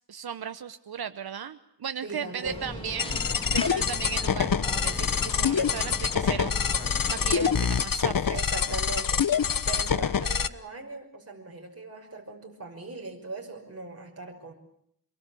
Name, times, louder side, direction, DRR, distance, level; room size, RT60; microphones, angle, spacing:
voice 1, 0.1-3.2 3.5-8.3, right 8 dB, 85° right, 10 dB, 1.0 m, -36 dB
voice 2, 2.0-2.7 8.3-14.5, right 3 dB, 40° right, 1 dB, 5.6 m, -40 dB
sound 1, 2.4-7.8, left 1 dB, 15° left, 2.9 m, -38 dB
sound 2, 3.0-10.5, left 7 dB, 65° left, 1.1 m, -26 dB
27.0 x 22.5 x 8.5 m, 0.71 s
wide cardioid pair, 65°, 36 cm